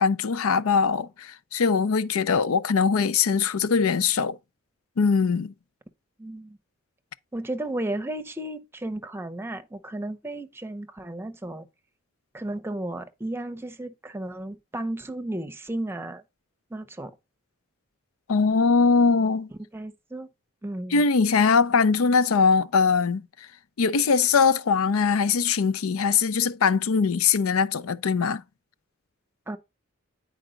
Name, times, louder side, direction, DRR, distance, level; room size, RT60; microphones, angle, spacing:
voice 1, 0.0-4.4 5.0-5.5 18.3-19.5 20.9-23.3 23.8-28.4, left 5 dB, 90° left, 0.5 m, -21 dB
voice 2, 6.2-6.6 7.3-11.7 12.3-16.2 16.7-17.1 19.7-20.3 20.6-21.0 29.5-29.6, right 1 dB, 10° right, 0.7 m, -34 dB
9.0 x 4.7 x 3.8 m
head